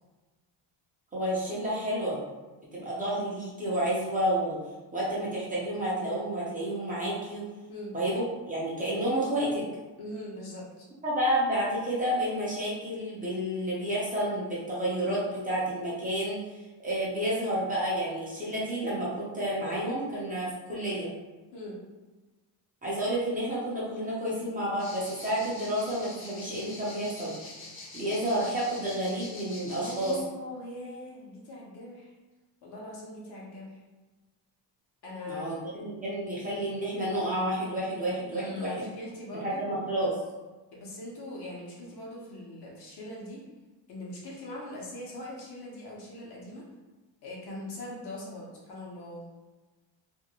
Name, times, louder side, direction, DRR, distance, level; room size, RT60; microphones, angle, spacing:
voice 1, 1.1-2.2 2.7-4.6 4.9-7.4 7.9-9.7 11.0-21.1 22.8-27.3 27.9-30.2 35.3-38.8 39.3-40.2, right 1 dB, 20° right, -7 dB, 0.6 m, -30 dB
voice 2, 10.0-10.9 21.5-21.8 29.7-32.1 32.6-33.8 35.0-35.6 38.3-39.6 40.7-43.4 43.9-46.6 47.2-49.2, left 1 dB, 60° left, -4 dB, 0.9 m, -41 dB
sound 1, 24.8-30.2, left 2 dB, 30° left, 0.6 m, -45 dB
2.6 x 2.2 x 2.8 m, 1.2 s
cardioid pair, 135°, 44 cm